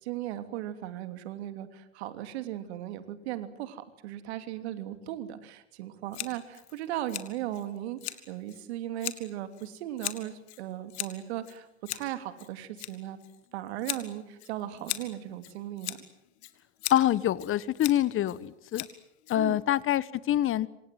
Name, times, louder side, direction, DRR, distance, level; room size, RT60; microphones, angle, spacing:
voice 1, 0.0-13.2 13.5-16.0 19.3-19.6, right 12 dB, 70° right, 10 dB, 3.0 m, -37 dB
Scissors, 6.1-19.8, left 15 dB, 75° left, 2.7 m, -41 dB
voice 2, 16.9-18.9 19.3-20.7, left 12 dB, 40° left, 19 dB, 1.2 m, -26 dB
27.0 x 26.5 x 7.8 m, 0.82 s
hypercardioid pair, 90°, 33 cm